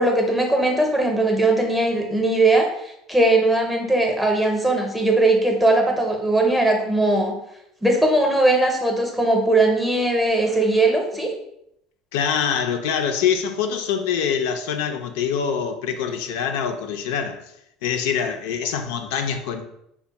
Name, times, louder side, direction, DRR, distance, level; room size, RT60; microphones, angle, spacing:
voice 1, 0.0-2.7 3.1-7.3 7.8-11.3, right 2 dB, 5° right, 0.6 m, -19 dB
voice 2, 12.1-17.4 17.8-19.6, left 7 dB, 85° left, 0.4 m, -24 dB
3.4 x 2.1 x 4.0 m
cardioid pair, 135°, 0 cm